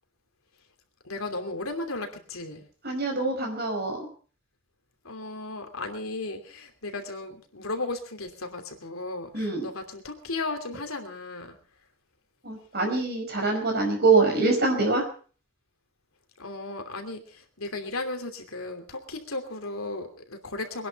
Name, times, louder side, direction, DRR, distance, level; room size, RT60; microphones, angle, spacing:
voice 1, 1.0-2.6 5.0-11.6 16.4-20.9, left 2 dB, 75° left, 5 dB, 2.9 m, -35 dB
voice 2, 2.8-4.1 9.3-9.6 12.4-15.0, right 3 dB, 45° right, 4 dB, 5.2 m, -24 dB
22.5 x 11.0 x 5.4 m, 0.42 s
head